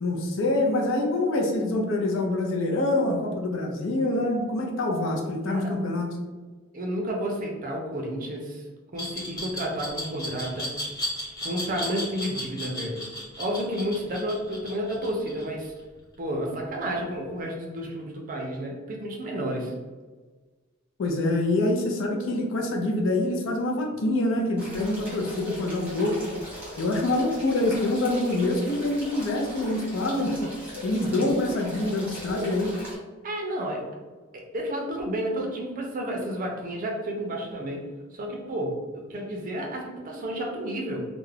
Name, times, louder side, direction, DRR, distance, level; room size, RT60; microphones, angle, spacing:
voice 1, 0.0-6.1 21.0-26.2 26.8-30.5 30.8-32.7, left 2 dB, 70° left, 1 dB, 0.5 m, -25 dB
voice 2, 6.7-8.7 8.9-10.7 11.4-13.0 13.4-15.7 16.2-19.7 33.2-33.8 34.3-41.1, equal, 40° right, 0 dB, 0.4 m, -31 dB
Glass, 9.0-15.8, equal, 20° left, 1.0 m, -34 dB
sound 1, 24.6-32.9, equal, 10° right, 0.8 m, -40 dB
2.3 x 2.1 x 3.2 m, 1.3 s
head